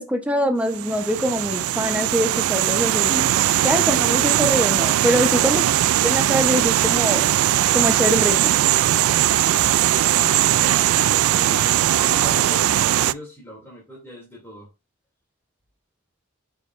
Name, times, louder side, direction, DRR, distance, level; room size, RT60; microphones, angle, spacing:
voice 1, 0.0-3.4 3.6-5.7 6.0-7.3 7.7-8.6, equal, 5° right, 6 dB, 0.9 m, -23 dB
sound 1, 0.7-13.1, right 13 dB, 75° right, 0.3 m, -19 dB
voice 2, 5.2-5.6 9.1-14.7, equal, 10° left, -6 dB, 2.8 m, -41 dB
9.6 x 4.8 x 2.6 m, 0.27 s
head